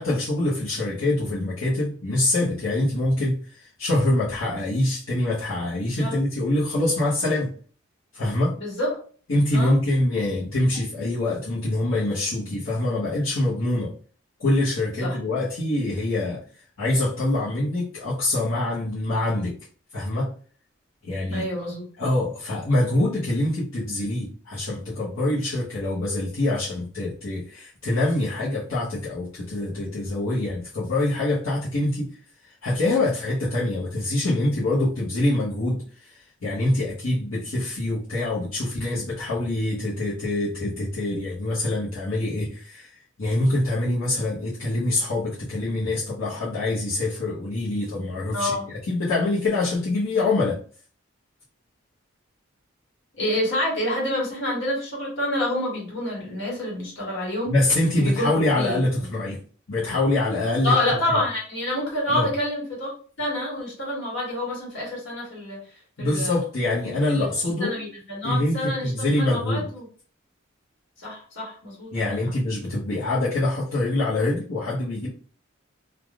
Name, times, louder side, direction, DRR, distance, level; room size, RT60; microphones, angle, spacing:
voice 1, 0.0-7.5 8.1-8.5 9.3-13.9 14.4-16.4 16.8-19.6 19.9-20.3 21.0-21.4 22.0-32.1 32.4-42.9 43.2-50.6 57.5-59.4 59.7-60.7 62.1-62.3 66.0-67.7 68.2-69.7 71.9-75.1, left 2 dB, 85° left, -9 dB, 1.0 m, -25 dB
voice 2, 8.6-9.0 9.5-9.8 15.0-15.2 21.3-21.8 48.3-48.7 53.2-57.5 57.9-58.3 58.5-58.8 60.6-62.9 63.2-65.6 66.0-66.4 67.1-67.3 67.6-68.9 69.2-69.9 71.0-72.2, left 1 dB, 65° left, -4 dB, 1.3 m, -27 dB
3.3 x 2.4 x 2.4 m, 0.42 s
head